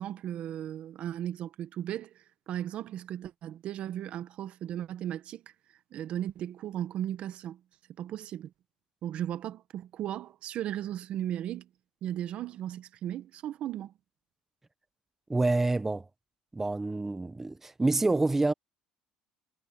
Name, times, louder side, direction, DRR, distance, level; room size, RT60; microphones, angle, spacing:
voice 1, 0.0-5.4 5.9-7.6 8.0-8.5 9.0-11.7 12.0-13.9, right 11 dB, 55° right, 1.3 m, -36 dB
voice 2, 15.3-16.1 16.5-18.5, right 2 dB, 15° right, 1.0 m, -27 dB
supercardioid pair, 105°, 2 cm